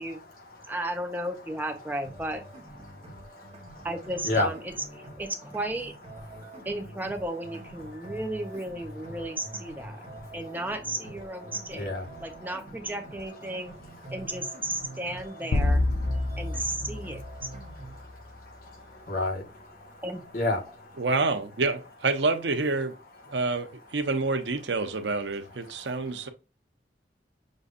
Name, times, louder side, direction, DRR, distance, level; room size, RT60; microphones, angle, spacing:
voice 1, 0.0-0.8 2.8-3.9 4.2-4.5 4.9-5.1 6.3-6.7 7.8-8.2 9.0-9.3 9.6-10.7 11.3-12.9 13.4-20.0 20.3-21.1 23.2-23.6 25.4-26.3, left 2 dB, 55° left, 1.5 m, -37 dB
voice 2, 0.7-2.4 3.8-4.7 5.2-5.9 6.6-10.0 10.3-11.9 12.2-13.7 14.1-15.8 16.4-17.5 20.0-20.2, right 1 dB, 10° right, 0.8 m, -34 dB
sound 1, 2.0-18.0, right 2 dB, 35° right, 1.1 m, -46 dB
sound 2, 15.5-18.1, left 2 dB, 80° left, 0.6 m, -28 dB
voice 3, 21.0-23.0 23.3-26.3, right 3 dB, 85° right, 0.7 m, -28 dB
6.4 x 2.5 x 2.5 m
head